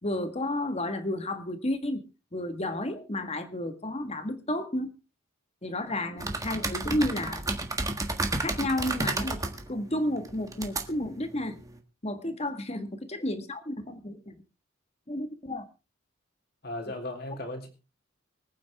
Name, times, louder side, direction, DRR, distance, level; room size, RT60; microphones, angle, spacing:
voice 1, 0.0-2.0 2.3-4.9 5.6-7.4 8.4-9.4 9.7-11.6 12.0-14.3 15.1-15.6, left 1 dB, 30° left, 9 dB, 1.6 m, -31 dB
sound 1, 6.2-11.8, right 2 dB, 15° right, 1.5 m, -33 dB
voice 2, 16.6-17.7, left 1 dB, 50° left, 3 dB, 3.5 m, -36 dB
24.5 x 9.2 x 3.5 m, 0.31 s
head